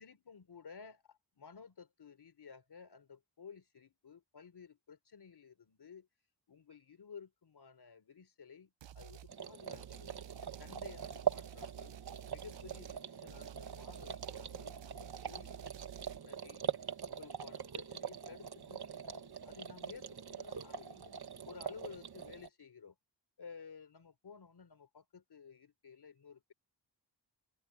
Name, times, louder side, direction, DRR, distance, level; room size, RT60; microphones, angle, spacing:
voice 1, 0.0-6.1 6.5-10.2 10.5-11.9 12.3-15.5 15.8-16.6 17.0-21.1 21.5-23.0 23.4-26.5, left 6 dB, 65° left, 3.7 m, -54 dB
sound 1, 8.8-9.3 9.7-16.2, right 10 dB, 80° right, 0.8 m, -52 dB
sound 2, 9.3-22.5, right 7 dB, 60° right, 1.6 m, -42 dB
open air
wide cardioid pair, 145°, 43 cm